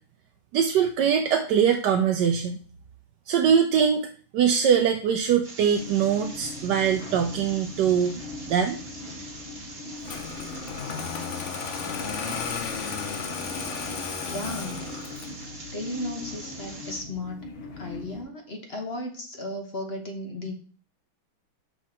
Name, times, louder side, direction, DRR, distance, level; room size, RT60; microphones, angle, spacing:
voice 1, 0.5-2.6 3.3-4.1 4.3-8.2 8.5-8.8, right 7 dB, 70° right, 5 dB, 1.1 m, -22 dB
sound 1, 5.4-17.0, right 2 dB, 25° right, 1.4 m, -44 dB
sound 2, 5.7-18.2, left 2 dB, 80° left, 2.2 m, -41 dB
Engine starting, 10.0-15.4, left 5 dB, 60° left, 0.7 m, -33 dB
voice 2, 14.2-14.8 15.7-17.5 17.8-20.6, left 1 dB, 40° left, 4 dB, 1.1 m, -35 dB
5.8 x 5.7 x 4.3 m, 0.41 s
omnidirectional pair, 2.3 m